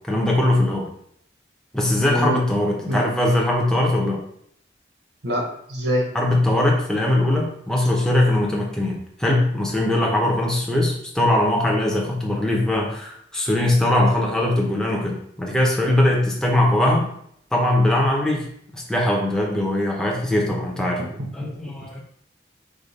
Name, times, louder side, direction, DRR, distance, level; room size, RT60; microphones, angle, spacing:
voice 1, 0.1-0.9 1.7-4.2 6.1-17.1 17.5-18.5 18.7-21.0 21.3-22.0, left 1 dB, 5° left, -2 dB, 0.7 m, -21 dB
voice 2, 2.0-2.4 2.9-3.0 5.2-6.1 21.0-21.5, equal, 70° right, 0 dB, 1.0 m, -25 dB
5.0 x 2.4 x 4.0 m, 0.70 s
head